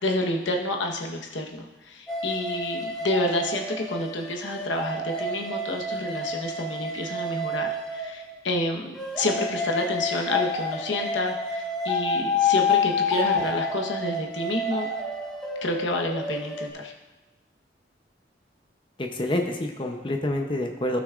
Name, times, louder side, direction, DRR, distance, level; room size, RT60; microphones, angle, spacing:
voice 1, 0.0-14.9 15.6-16.9, left 1 dB, 90° left, 1 dB, 1.1 m, -29 dB
sound 1, 2.1-8.4 8.9-16.7, left 3 dB, 5° left, 0.9 m, -29 dB
voice 2, 19.0-21.0, left 1 dB, 25° left, 3 dB, 0.6 m, -27 dB
15.0 x 6.1 x 2.4 m, 1.1 s
head